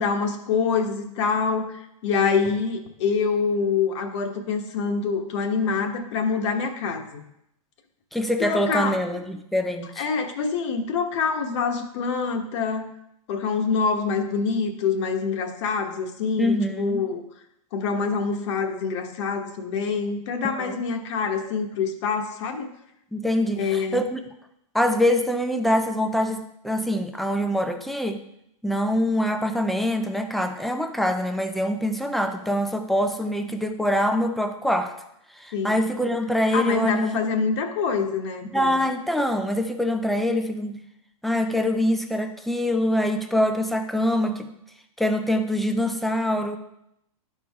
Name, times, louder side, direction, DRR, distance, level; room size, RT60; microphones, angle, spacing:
voice 1, 0.0-7.2 8.4-9.0 10.0-12.9 13.3-17.2 17.7-22.7 23.6-24.0 35.5-35.8 36.5-38.8, left 5 dB, 55° left, 5 dB, 1.1 m, -26 dB
voice 2, 8.1-10.1 16.4-17.0 20.6-20.8 23.1-24.2 24.7-28.2 28.6-35.0 35.4-37.4 38.5-40.8 41.2-44.5 45.0-46.6, left 1 dB, ahead, 6 dB, 0.3 m, -24 dB
11.5 x 4.6 x 3.5 m, 0.79 s
hypercardioid pair, 150°, 18 cm